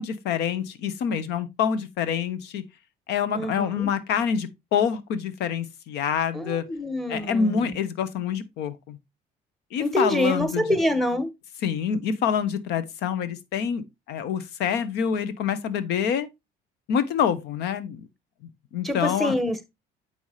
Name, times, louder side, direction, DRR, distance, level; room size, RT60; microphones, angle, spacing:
voice 1, 0.0-2.6 3.1-6.6 7.1-9.0 9.7-10.6 11.6-16.3 16.9-18.1 18.7-19.4, left 7 dB, 85° left, 1.0 m, -26 dB
voice 2, 3.3-3.9 6.3-7.8 9.8-11.3 18.8-19.6, left 1 dB, ahead, 1.4 m, -26 dB
7.8 x 5.6 x 3.2 m
cardioid pair, 110°, 17 cm